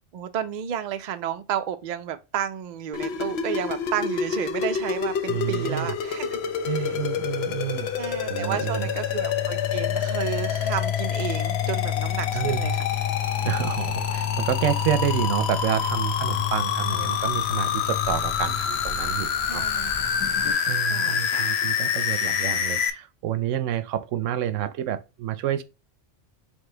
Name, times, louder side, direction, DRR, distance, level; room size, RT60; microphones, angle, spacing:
voice 1, 0.1-6.4 6.6-7.0 8.0-12.8 19.5-19.9 20.9-21.6, right 9 dB, 55° right, 0.5 m, -32 dB
sound 1, 2.9-22.9, left 7 dB, 65° left, 0.8 m, -27 dB
voice 2, 5.3-6.0 6.6-7.9 8.3-8.9 12.3-12.7 13.4-19.7 19.9-20.2 20.7-25.6, right 11 dB, 85° right, 0.9 m, -29 dB
sound 2, 6.3-20.5, left 10 dB, 35° left, 0.3 m, -31 dB
5.0 x 2.2 x 3.8 m
omnidirectional pair, 1.3 m